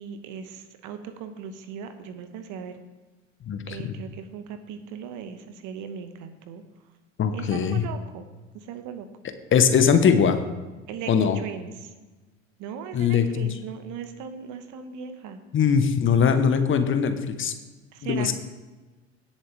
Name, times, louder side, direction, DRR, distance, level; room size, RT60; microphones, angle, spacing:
voice 1, 0.0-2.8 3.7-6.6 7.3-8.3 8.5-9.1 10.9-11.9 12.6-15.4 17.9-18.3, right 7 dB, 50° right, 9 dB, 1.2 m, -38 dB
voice 2, 3.5-3.9 7.2-7.8 9.5-10.4 11.1-11.4 12.9-13.5 15.5-17.5 18.0-18.3, left 7 dB, 30° left, 8 dB, 1.1 m, -21 dB
17.5 x 7.3 x 3.4 m, 1.2 s
hypercardioid pair, 75°, 38 cm